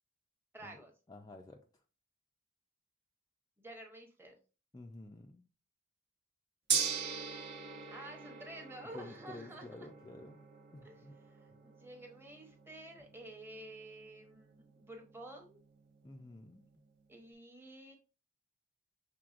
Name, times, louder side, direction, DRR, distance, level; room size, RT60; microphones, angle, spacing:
voice 1, 0.5-0.9 3.6-4.3 7.9-9.7 10.8-11.0 11.3-15.6 17.1-18.0, right 1 dB, 10° right, 2 dB, 0.8 m, -51 dB
voice 2, 1.1-1.6 4.7-5.4 8.9-10.4 10.7-11.2 16.0-16.7, left 2 dB, 20° left, 2 dB, 0.4 m, -50 dB
Gong, 6.7-16.9, right 6 dB, 55° right, 1.0 m, -42 dB
6.1 x 3.3 x 2.4 m, 0.35 s
head